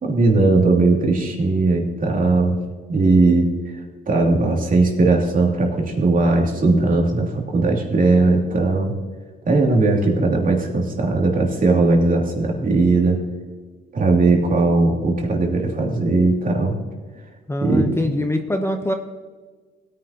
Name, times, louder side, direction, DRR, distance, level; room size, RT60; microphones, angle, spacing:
voice 1, 0.0-2.6 2.9-3.7 4.1-8.9 9.4-13.2 13.9-16.8 17.6-17.9, right 3 dB, 45° right, 0 dB, 2.7 m, -18 dB
voice 2, 17.5-18.9, left 1 dB, 10° left, 5 dB, 0.9 m, -23 dB
17.0 x 10.0 x 2.9 m, 1.4 s
cardioid pair, 90°, 20 cm